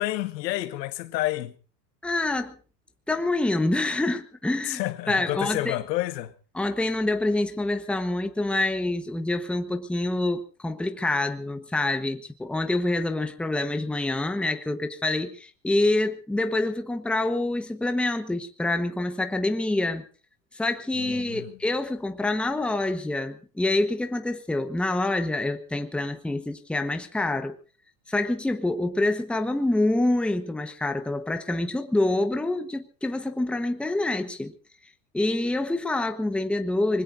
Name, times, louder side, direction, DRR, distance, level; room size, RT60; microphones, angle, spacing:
voice 1, 0.0-1.6 4.6-6.3 21.0-21.6, left 15 dB, 80° left, 1.7 m, -29 dB
voice 2, 2.0-2.6 3.1-4.8 5.1-5.7 6.5-20.1 20.5-27.5 28.1-34.5 35.1-37.0, left 2 dB, ahead, 1.1 m, -26 dB
25.0 x 20.5 x 2.6 m
supercardioid pair, 130°, 49 cm